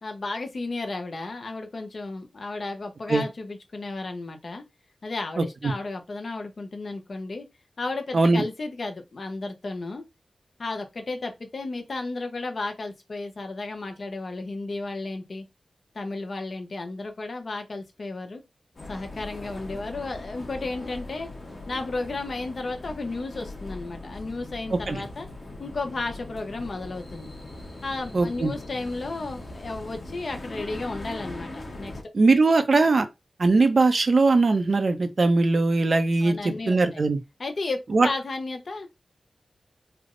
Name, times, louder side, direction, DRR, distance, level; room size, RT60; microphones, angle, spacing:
voice 1, 0.0-4.6 5.0-7.5 7.8-10.0 10.6-15.5 15.9-18.4 18.9-21.3 21.7-25.3 25.6-27.3 27.8-32.0 36.2-37.0 37.4-38.9, left 3 dB, 60° left, 0.8 m, -33 dB
voice 2, 5.4-5.7 8.1-8.4 24.7-25.0 28.1-28.5 32.1-33.1 33.4-37.2 37.9-38.1, right 3 dB, 55° right, 0.6 m, -20 dB
sound 1, 18.8-32.0, left 2 dB, 40° left, 1.1 m, -40 dB
3.4 x 2.0 x 3.7 m
wide cardioid pair, 95°, 0 cm